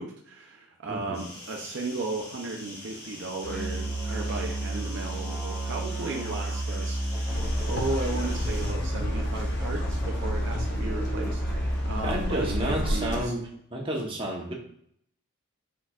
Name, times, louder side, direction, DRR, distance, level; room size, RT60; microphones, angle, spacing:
voice 1, 0.0-13.3, right 3 dB, 55° right, 1 dB, 0.5 m, -35 dB
sound 1, 1.1-8.7, left 1 dB, 85° left, 1.7 m, -44 dB
Musical instrument, 3.4-13.2, right 1 dB, 10° left, 0.8 m, -31 dB
sound 2, 7.3-13.2, left 1 dB, 55° left, 0.8 m, -32 dB
voice 2, 12.0-13.4 13.7-14.5, right 1 dB, 25° right, -2 dB, 0.9 m, -30 dB
4.5 x 4.5 x 2.4 m, 0.68 s
head